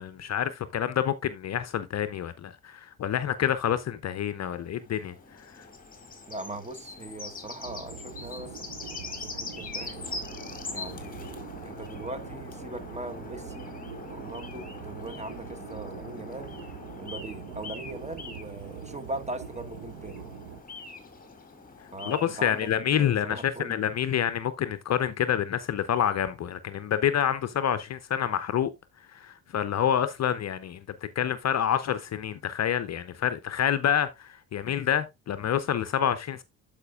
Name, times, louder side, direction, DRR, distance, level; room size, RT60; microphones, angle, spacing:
voice 1, 0.0-5.1 5.5-5.7 22.1-28.7 29.1-30.8 31.2-36.4, left 9 dB, 40° left, 0.6 m, -27 dB
sound 1, 4.5-22.7, left 3 dB, 20° left, 2.1 m, -42 dB
voice 2, 6.3-8.9 9.3-10.1 10.7-13.7 14.1-16.6 17.0-20.2 21.9-23.8, right 2 dB, 15° right, 1.2 m, -40 dB
sound 2, 7.6-20.6, right 7 dB, 75° right, 1.2 m, -43 dB
12.0 x 5.1 x 2.4 m
hypercardioid pair, 65°, 42 cm